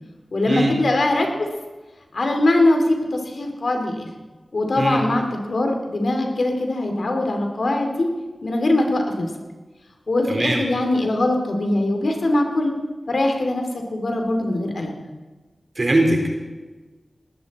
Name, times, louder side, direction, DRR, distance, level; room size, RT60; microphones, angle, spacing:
voice 1, 0.3-1.5 2.1-4.1 4.5-8.1 8.4-9.3 10.1-12.7 13.1-14.9, left 2 dB, 75° left, 3 dB, 2.6 m, -21 dB
voice 2, 10.3-10.6 15.8-16.3, right 1 dB, 50° right, 1 dB, 3.8 m, -20 dB
19.5 x 13.5 x 4.2 m, 1.3 s
cardioid pair, 50°, 0 cm